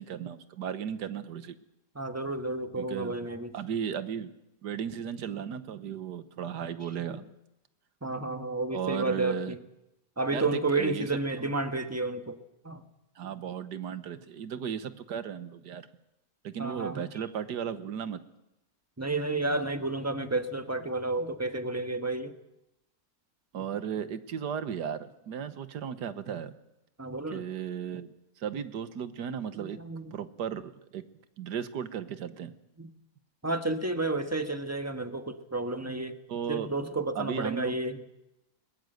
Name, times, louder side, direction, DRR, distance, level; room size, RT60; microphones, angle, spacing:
voice 1, 0.0-1.5 2.8-3.3 3.5-4.3 4.6-7.2 8.7-9.6 10.3-11.1 11.4-11.5 13.2-15.9 16.4-18.2 23.5-26.5 27.3-29.8 30.1-31.0 31.4-32.5 36.3-36.7 37.1-37.8, right 8 dB, 85° right, 12 dB, 1.7 m, -35 dB
voice 2, 1.9-3.5 7.1-7.2 8.0-9.6 10.2-12.4 12.6-12.8 16.6-17.1 19.0-22.3 27.0-27.4 29.6-30.2 32.8-32.9 33.4-36.1 36.5-38.0, right 2 dB, 10° right, 7 dB, 1.2 m, -31 dB
21.0 x 20.5 x 7.9 m, 0.89 s
omnidirectional pair, 1.8 m